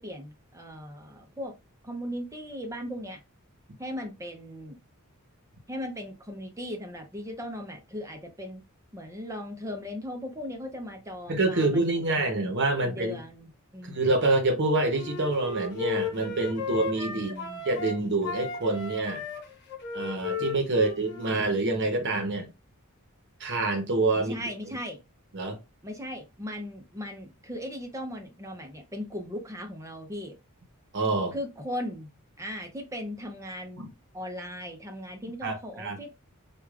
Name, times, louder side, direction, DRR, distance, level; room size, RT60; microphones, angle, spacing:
voice 1, 0.0-1.5 1.8-3.2 3.8-4.8 5.7-8.6 8.9-12.4 12.8-14.1 17.1-17.6 24.3-25.0 25.8-30.3 31.3-32.1 32.4-36.1, equal, 15° right, 0.5 m, -38 dB
voice 2, 11.3-13.2 13.8-17.3 17.7-19.2 19.9-22.5 23.4-24.3 24.7-24.8 25.3-25.6 30.9-31.3 33.8-33.9 35.4-36.0, right 2 dB, 50° right, 0.8 m, -26 dB
Wind instrument woodwind instrument, 14.9-18.0 18.2-21.5, left 4 dB, 50° left, 0.9 m, -35 dB
4.8 x 2.3 x 2.3 m
head